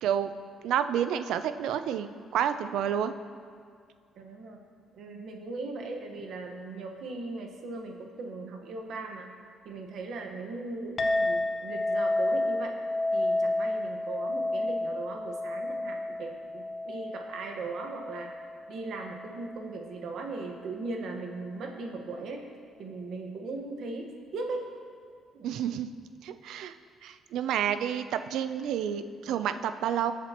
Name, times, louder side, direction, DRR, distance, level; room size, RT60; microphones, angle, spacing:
voice 1, 0.6-3.1 25.4-25.9 26.2-26.7 27.0-30.1, right 9 dB, 70° right, 11 dB, 0.5 m, -29 dB
voice 2, 4.2-4.6 4.9-9.3 9.6-12.8 13.1-18.3 18.7-22.4 22.8-24.6 25.3-25.5, right 3 dB, 55° right, 3 dB, 1.3 m, -38 dB
Chink clink, 11.0-19.7, left 2 dB, 25° left, 0.7 m, -31 dB
21.0 x 7.5 x 3.0 m, 2.2 s
cardioid pair, 175°, 0 cm